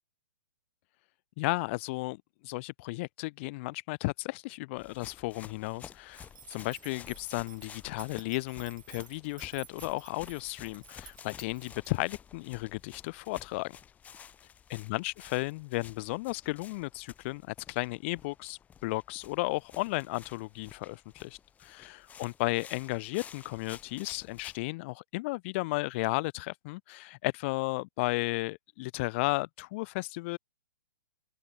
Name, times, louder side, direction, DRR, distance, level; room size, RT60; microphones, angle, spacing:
voice 1, 1.4-13.8 14.7-30.4, left 23 dB, 30° left, 2.2 m, -34 dB
sound 1, 4.8-24.6, left 8 dB, 10° left, 5.8 m, -52 dB
sound 2, 6.1-11.9, right 9 dB, 60° right, 7.8 m, -53 dB
open air
hypercardioid pair, 160°, 12 cm